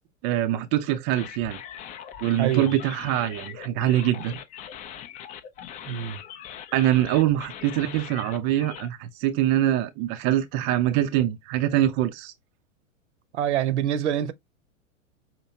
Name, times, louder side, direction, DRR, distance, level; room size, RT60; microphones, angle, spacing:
voice 1, 0.2-1.6 2.2-4.4 6.7-12.3, right 12 dB, 30° right, 0.5 m, -24 dB
sound 1, 1.1-8.9, left 9 dB, 20° left, 0.4 m, -41 dB
voice 2, 2.3-2.7 5.8-6.2 13.3-14.3, right 11 dB, 60° right, 0.9 m, -25 dB
5.7 x 2.6 x 2.7 m
hypercardioid pair, 105°, 40 cm